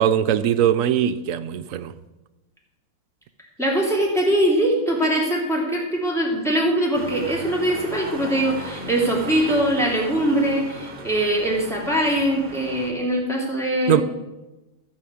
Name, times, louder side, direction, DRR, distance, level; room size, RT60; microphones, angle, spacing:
voice 1, 0.0-1.9 13.9-14.0, right 9 dB, 70° right, 12 dB, 1.0 m, -20 dB
voice 2, 3.6-14.0, right 1 dB, ahead, -3 dB, 3.1 m, -22 dB
sound 1, 6.9-12.9, right 2 dB, 40° right, 1.5 m, -36 dB
15.0 x 5.0 x 8.5 m, 1.1 s
omnidirectional pair, 1.5 m